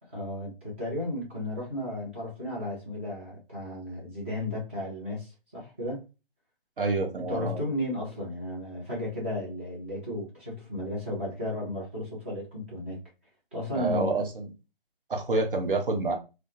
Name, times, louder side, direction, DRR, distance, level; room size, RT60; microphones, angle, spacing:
voice 1, 0.0-6.0 7.3-13.0 13.5-14.1, left 1 dB, 15° right, 0.5 m, -34 dB
voice 2, 6.8-7.6 13.7-14.4 15.1-16.2, right 3 dB, 65° right, 0.7 m, -27 dB
2.2 x 2.1 x 2.7 m
figure-of-eight pair, 150°, 29 cm